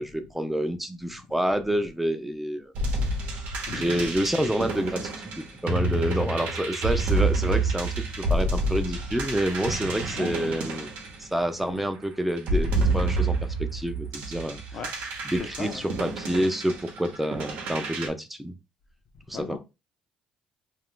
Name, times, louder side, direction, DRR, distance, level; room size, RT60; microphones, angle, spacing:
voice 1, 0.0-2.7 3.7-10.9 11.2-14.6 15.2-18.5 19.3-19.6, equal, 5° right, 0.5 m, -28 dB
sound 1, 2.7-11.8 12.4-18.1, right 2 dB, 75° right, 0.8 m, -28 dB
voice 2, 3.7-4.5 10.1-11.0 11.6-11.9 14.7-14.9 15.4-16.0 19.1-19.6, left 5 dB, 55° left, 0.8 m, -39 dB
2.5 x 2.3 x 3.6 m
cardioid pair, 95°, 3 cm